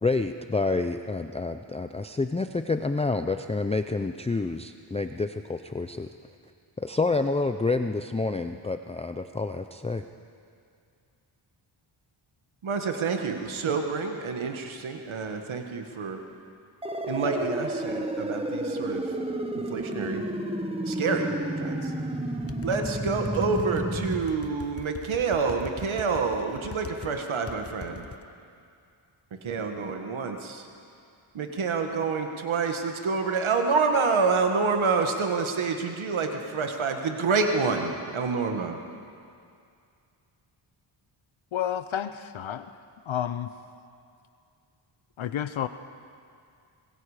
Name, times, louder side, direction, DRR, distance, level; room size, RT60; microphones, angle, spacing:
voice 1, 0.0-6.1 6.8-10.1, left 3 dB, 15° left, 8 dB, 0.5 m, -28 dB
voice 2, 12.6-16.2 17.1-19.0 19.7-20.2 20.9-21.3 21.6-21.9 22.6-28.0 29.4-30.7 31.3-38.8, right 4 dB, 70° right, 4 dB, 1.6 m, -27 dB
sound 1, 16.8-24.2, right 1 dB, 10° right, 1.2 m, -31 dB
sound 2, 22.4-27.1 27.5-28.2, left 5 dB, 30° left, 0.9 m, -41 dB
voice 3, 41.5-42.7 43.1-43.5 45.2-45.7, left 10 dB, 70° left, 11 dB, 0.8 m, -30 dB
25.5 x 21.0 x 4.9 m, 2.4 s
wide cardioid pair, 110°, 50 cm